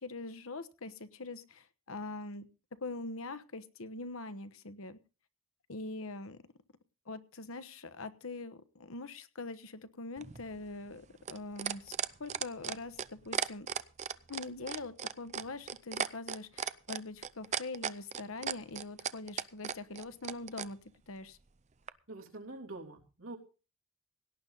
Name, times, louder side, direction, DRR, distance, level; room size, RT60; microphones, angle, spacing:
voice 1, 0.0-2.5 2.8-5.0 5.7-6.4 7.1-11.9 12.2-13.7 14.3-20.8 21.1-21.4, left 3 dB, 90° left, 13 dB, 1.2 m, -43 dB
sound 1, 10.2-20.7 21.9-22.0, right 7 dB, 35° right, 0.6 m, -36 dB
voice 2, 21.9-23.4, right 2 dB, 80° right, 0 dB, 3.2 m, -46 dB
17.5 x 10.5 x 4.0 m, 0.34 s
head